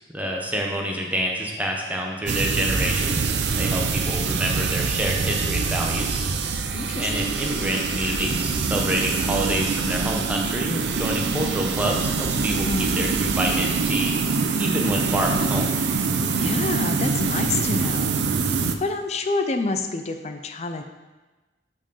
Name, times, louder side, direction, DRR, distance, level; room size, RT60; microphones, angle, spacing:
voice 1, 0.1-6.2 7.0-14.1 14.6-15.7, equal, 10° right, -1 dB, 0.9 m, -27 dB
sound 1, 2.3-18.7, right 4 dB, 70° right, 0.5 m, -24 dB
voice 2, 6.7-7.4 12.6-13.0 16.4-18.2 18.8-20.8, left 3 dB, 40° left, 7 dB, 0.5 m, -28 dB
5.9 x 4.5 x 5.4 m, 1.2 s
head